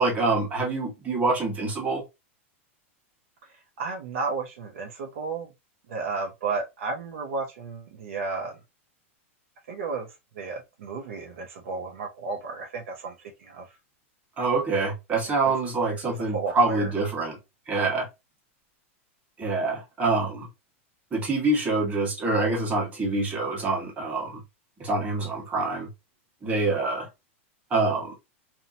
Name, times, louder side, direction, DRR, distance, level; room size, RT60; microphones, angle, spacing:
voice 1, 0.0-2.0 14.4-17.4 17.7-18.1 19.4-20.5 21.1-24.4 24.8-25.9 26.4-27.1 27.7-28.1, right 3 dB, 20° right, 1.3 m, -26 dB
voice 2, 3.8-5.5 5.9-8.6 9.7-10.1 10.4-13.1 13.4-13.7 15.4-15.5 15.8-16.0 16.3-16.9, right 4 dB, 75° right, 0.7 m, -33 dB
2.8 x 2.2 x 2.7 m
supercardioid pair, 140°, 7 cm